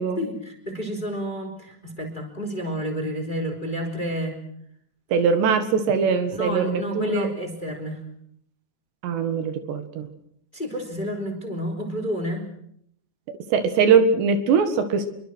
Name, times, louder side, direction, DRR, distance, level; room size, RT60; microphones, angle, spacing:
voice 1, 0.2-4.4 6.4-8.0 10.5-12.5, equal, 10° left, 5 dB, 3.2 m, -30 dB
voice 2, 5.1-7.3 9.0-10.1 13.5-15.1, right 5 dB, 75° right, 9 dB, 3.9 m, -21 dB
26.5 x 23.0 x 6.3 m, 0.72 s
omnidirectional pair, 5.1 m